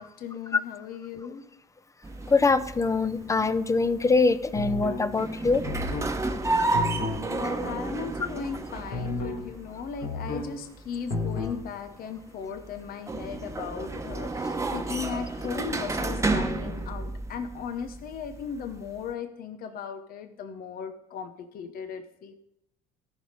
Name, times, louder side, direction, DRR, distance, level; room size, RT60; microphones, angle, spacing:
voice 1, 0.0-1.4 7.3-22.3, left 6 dB, 60° left, 9 dB, 0.9 m, -37 dB
sound 1, 2.0-19.1, right 2 dB, 15° right, 1.1 m, -32 dB
voice 2, 2.3-5.6, left 3 dB, 20° left, 14 dB, 0.7 m, -23 dB
sound 2, 4.6-5.1 5.6-6.1 6.7-7.3 8.9-9.5 10.0-10.5 11.1-11.6, left 2 dB, 80° left, 2.8 m, -31 dB
13.5 x 5.4 x 5.1 m, 0.81 s
supercardioid pair, 75°, 17 cm